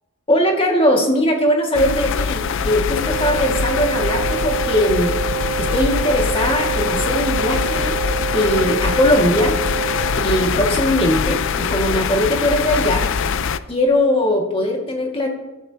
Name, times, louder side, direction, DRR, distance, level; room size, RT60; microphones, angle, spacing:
voice 1, 0.3-5.1 5.6-8.0 8.3-9.6 10.2-13.1 13.7-15.3, left 1 dB, 25° left, 1 dB, 1.9 m, -19 dB
sound 1, 1.7-13.6, left 6 dB, 65° left, 0.5 m, -23 dB
Wind instrument woodwind instrument, 3.0-10.3, right 8 dB, 25° right, 4.1 m, -27 dB
20.5 x 12.0 x 2.8 m, 1.1 s
head